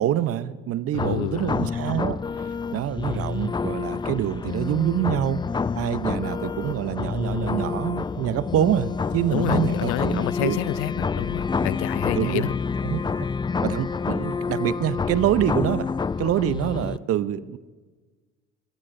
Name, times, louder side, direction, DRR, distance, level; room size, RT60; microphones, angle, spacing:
voice 1, 0.0-2.2 2.7-5.4 5.8-10.6 12.1-12.5 12.8-13.0 13.6-15.9 16.2-17.6, right 11 dB, 50° right, 0.8 m, -26 dB
voice 2, 0.9-1.7 9.3-12.5, left 17 dB, 65° left, 0.6 m, -29 dB
sound 1, 1.0-17.0, left 5 dB, 15° left, 0.5 m, -28 dB
25.0 x 18.0 x 2.7 m
hypercardioid pair, 60°, 30 cm